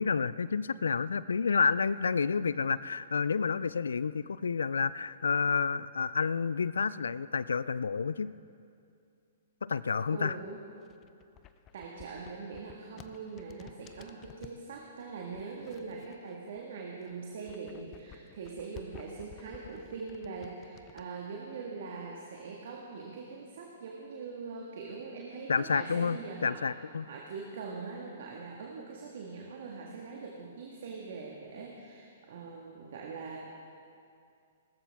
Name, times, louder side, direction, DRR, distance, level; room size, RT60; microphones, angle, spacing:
voice 1, 0.0-8.3 9.6-10.4 25.5-27.1, left 5 dB, 75° left, 17 dB, 0.3 m, -30 dB
voice 2, 10.1-10.6 11.7-26.8 27.0-33.4, right 4 dB, 60° right, -1 dB, 1.6 m, -42 dB
sound 1, 10.8-14.6 15.3-16.6 17.0-21.1, left 10 dB, 30° left, 0.6 m, -54 dB
18.5 x 14.0 x 3.5 m, 2.4 s
figure-of-eight pair, 120°, 0 cm